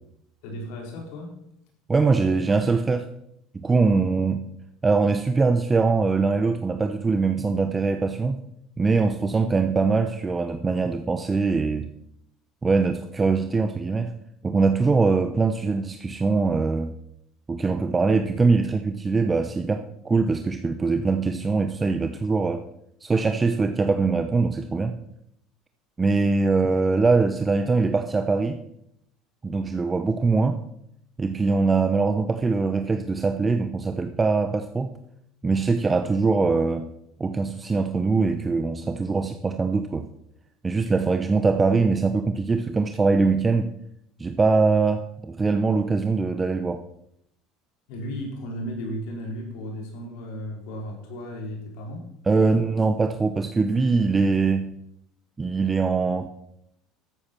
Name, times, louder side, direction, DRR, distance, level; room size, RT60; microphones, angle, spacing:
voice 1, 0.4-1.3 47.9-52.0 52.3-52.6, equal, 75° left, 0 dB, 4.5 m, -35 dB
voice 2, 1.9-3.1 3.5-4.5 4.8-8.4 8.8-11.9 12.6-14.1 14.4-16.9 17.5-22.6 23.0-25.0 26.0-28.6 29.4-30.6 31.2-34.9 35.4-36.9 37.2-40.1 40.6-43.7 44.2-46.8 52.3-54.7 55.4-56.3, right 4 dB, 20° right, 8 dB, 0.8 m, -22 dB
13.5 x 8.5 x 6.1 m, 0.76 s
supercardioid pair, 110°, 0 cm